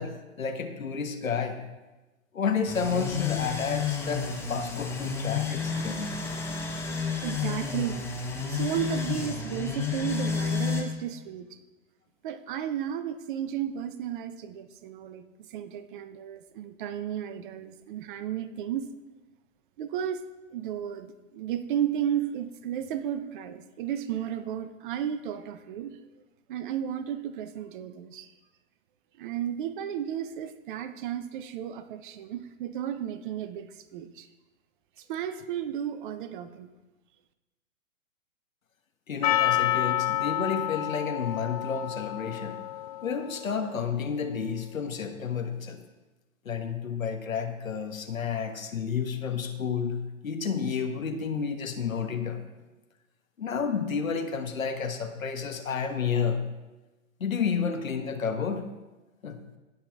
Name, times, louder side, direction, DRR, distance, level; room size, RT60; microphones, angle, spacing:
voice 1, 0.0-1.6 2.3-6.2 39.1-42.6 43.0-45.8 46.4-52.4 53.4-56.4 57.2-58.6 59.2-59.4, left 6 dB, 80° left, 7 dB, 1.3 m, -31 dB
sound 1, 2.7-10.8, left 6 dB, 5° left, 0.8 m, -31 dB
voice 2, 7.2-11.5 12.2-18.9 19.8-26.0 26.5-28.3 29.2-34.3 35.0-36.7, right 10 dB, 40° right, 10 dB, 0.7 m, -33 dB
Percussion, 39.2-43.8, left 13 dB, 30° left, 0.4 m, -29 dB
17.0 x 5.8 x 3.5 m, 1.1 s
figure-of-eight pair, 120°, 40 cm